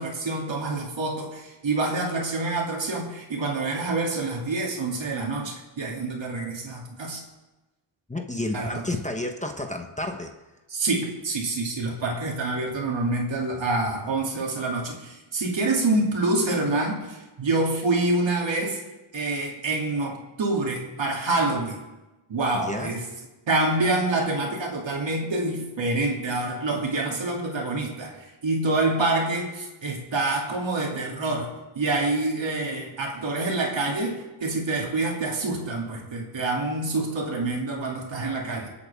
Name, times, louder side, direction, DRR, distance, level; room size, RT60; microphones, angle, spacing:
voice 1, 0.0-7.2 8.5-8.8 10.7-18.8 19.1-21.8 22.3-23.1 23.5-38.7, right 2 dB, 65° right, 0 dB, 2.8 m, -27 dB
voice 2, 8.1-10.3 22.5-22.9, left 2 dB, 15° left, 4 dB, 1.0 m, -31 dB
25.5 x 8.5 x 3.5 m, 1.1 s
wide cardioid pair, 115°, 49 cm